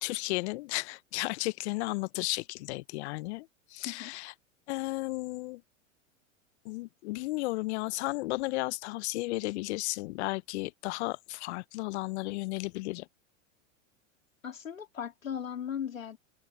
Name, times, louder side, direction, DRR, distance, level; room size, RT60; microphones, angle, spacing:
voice 1, 0.0-4.3 4.7-5.6 6.6-13.1, left 21 dB, 55° left, 0.9 m, -34 dB
voice 2, 3.8-4.2 14.4-16.2, left 8 dB, 90° left, 3.3 m, -37 dB
open air
hypercardioid pair, 100°, 39 cm